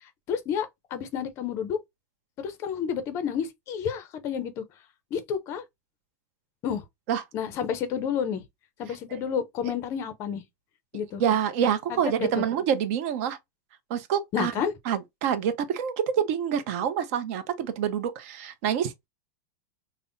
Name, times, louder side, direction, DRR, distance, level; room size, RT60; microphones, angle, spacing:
voice 1, 0.3-1.8 2.4-4.6 5.1-5.6 6.6-6.8 7.3-8.4 8.8-10.4 10.9-11.2 11.9-12.5 14.3-14.7, left 8 dB, 25° left, 0.5 m, -30 dB
voice 2, 11.2-13.4 13.9-14.5 14.9-19.1, right 8 dB, 45° right, 0.6 m, -27 dB
5.3 x 2.1 x 2.6 m
supercardioid pair, 170°, 10 cm